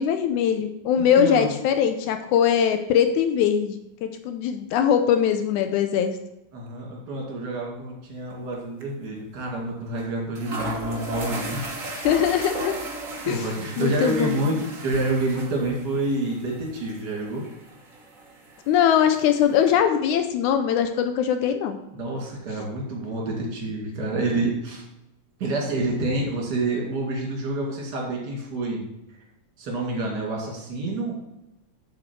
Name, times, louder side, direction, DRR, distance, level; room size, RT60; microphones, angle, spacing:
voice 1, 0.0-6.2 11.9-12.7 13.3-14.4 18.7-21.8, left 8 dB, 85° left, 7 dB, 1.7 m, -22 dB
voice 2, 1.0-1.5 6.5-11.8 13.2-17.4 21.9-24.8 25.4-28.8 29.6-31.2, right 2 dB, 30° right, -2 dB, 2.6 m, -28 dB
sound 1, 8.3-8.5 8.8-8.9 10.0-10.1 10.4-19.7, right 2 dB, 60° right, 0.8 m, -36 dB
7.8 x 7.4 x 4.6 m, 0.90 s
omnidirectional pair, 4.1 m